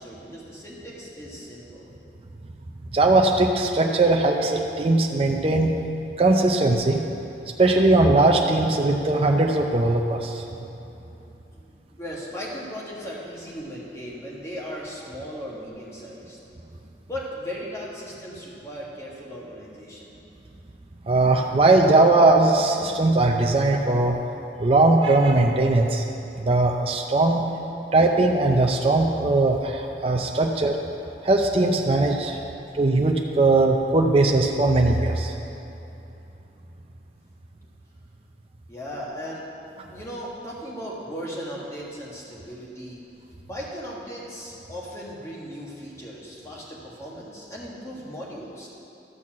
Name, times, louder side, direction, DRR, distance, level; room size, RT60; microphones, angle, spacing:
voice 1, 0.0-1.9 11.5-11.6 12.0-16.4 17.0-20.2 27.5-27.9 38.7-39.6 39.9-43.1 43.5-48.7, equal, 15° left, -5 dB, 1.5 m, -37 dB
voice 2, 2.9-5.7 6.2-7.0 7.6-10.4 21.1-24.2 24.6-26.0 26.4-27.4 27.9-30.8 31.2-32.4 32.7-35.3, right 2 dB, 30° right, 1 dB, 0.5 m, -19 dB
12.0 x 4.2 x 7.3 m, 3.0 s
head